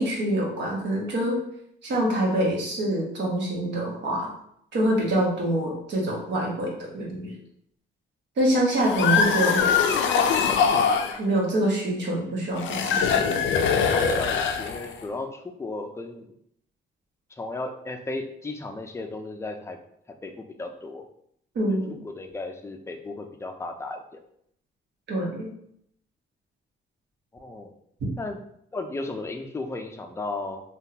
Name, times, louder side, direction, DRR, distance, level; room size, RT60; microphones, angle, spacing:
voice 1, 0.0-1.4 1.8-4.3 4.7-7.3 8.4-9.7 10.1-10.2 11.2-13.4 21.5-21.9 25.1-25.5, right 1 dB, 65° right, -2 dB, 1.2 m, -25 dB
sound 1, 8.7-11.2 12.6-15.0, left 6 dB, 70° left, 0.4 m, -22 dB
voice 2, 8.9-9.2 12.1-12.3 13.9-16.3 17.3-19.8 20.2-20.3 20.6-21.0 22.0-24.2 27.3-27.7 28.2-28.4 28.7-30.6, left 2 dB, 15° left, 4 dB, 0.4 m, -35 dB
3.5 x 2.3 x 2.8 m, 0.71 s
cardioid pair, 90°, 20 cm